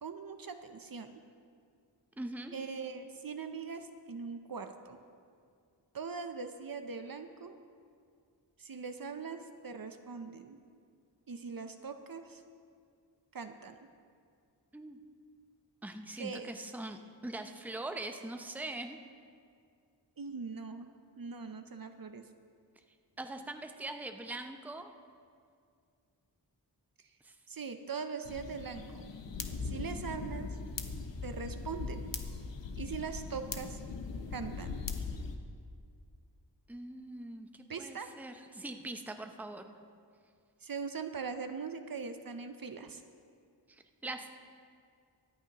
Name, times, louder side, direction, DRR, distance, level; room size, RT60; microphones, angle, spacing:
voice 1, 0.0-1.2 2.5-5.0 5.9-7.6 8.6-10.6 11.3-12.4 13.3-13.8 16.2-16.5 20.2-20.9 21.2-22.2 27.5-29.1 29.6-30.6 31.2-32.1 32.8-33.8 34.3-34.8 37.7-38.1 40.6-43.0, right 5 dB, 50° right, 8 dB, 0.7 m, -41 dB
voice 2, 2.2-2.5 14.7-15.0 15.8-19.0 23.2-24.9 27.2-27.4 36.7-39.8 43.7-44.3, right 2 dB, 5° right, 6 dB, 0.6 m, -42 dB
sound 1, 28.2-35.4, left 4 dB, 80° left, 0.9 m, -40 dB
23.5 x 8.7 x 3.0 m, 2.3 s
wide cardioid pair, 85°, 43 cm